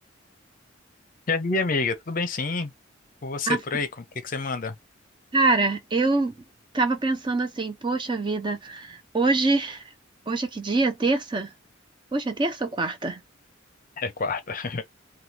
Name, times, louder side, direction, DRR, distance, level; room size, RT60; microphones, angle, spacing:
voice 1, 1.3-2.7 3.2-4.7 14.0-14.8, left 3 dB, 45° left, 0.6 m, -28 dB
voice 2, 5.3-6.3 6.7-9.8 10.3-11.5 12.1-13.2, right 3 dB, 25° right, 0.5 m, -24 dB
3.5 x 2.3 x 2.8 m
head